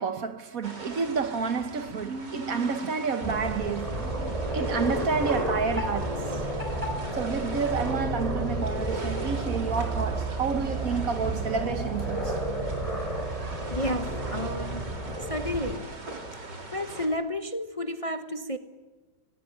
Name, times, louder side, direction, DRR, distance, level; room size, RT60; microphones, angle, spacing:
voice 1, 0.0-6.4 7.1-12.4, right 5 dB, 55° right, 1.5 m, -30 dB
sound 1, 0.6-17.1, right 2 dB, 85° right, 4.1 m, -42 dB
sound 2, 3.2-15.8, right 2 dB, 20° right, 4.4 m, -31 dB
voice 2, 13.7-14.9 15.3-15.9 16.3-18.6, left 1 dB, 25° left, 1.0 m, -32 dB
28.5 x 19.5 x 9.4 m
omnidirectional pair, 1.8 m